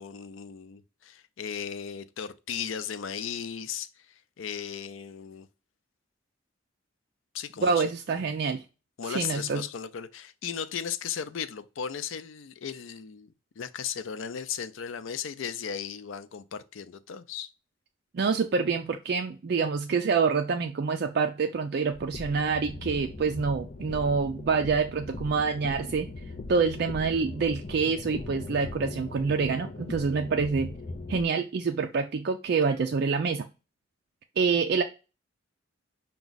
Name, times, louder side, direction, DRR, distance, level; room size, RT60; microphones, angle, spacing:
voice 1, 0.0-5.5 7.3-7.8 9.0-17.5, left 7 dB, 85° left, 0.4 m, -36 dB
voice 2, 7.6-8.6 9.0-9.6 18.1-26.1 26.5-30.8 31.1-33.5 34.4-34.8, right 5 dB, 55° right, 0.4 m, -26 dB
sound 1, 21.9-31.3, left 2 dB, 40° left, 0.5 m, -39 dB
6.0 x 2.3 x 3.9 m
head